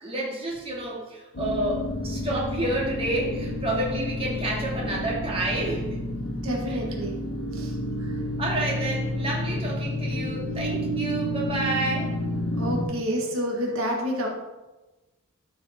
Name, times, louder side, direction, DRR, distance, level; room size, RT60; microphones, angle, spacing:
voice 1, 0.0-6.0 6.7-6.8 8.4-12.1, right 1 dB, 25° right, -3 dB, 2.5 m, -29 dB
sound 1, 1.3-12.9, left 1 dB, 90° left, 1.3 m, -30 dB
voice 2, 6.4-7.2 7.5-7.7 8.0-8.1 12.6-14.3, equal, 80° right, 0 dB, 1.8 m, -28 dB
12.5 x 6.4 x 4.4 m, 1.1 s
head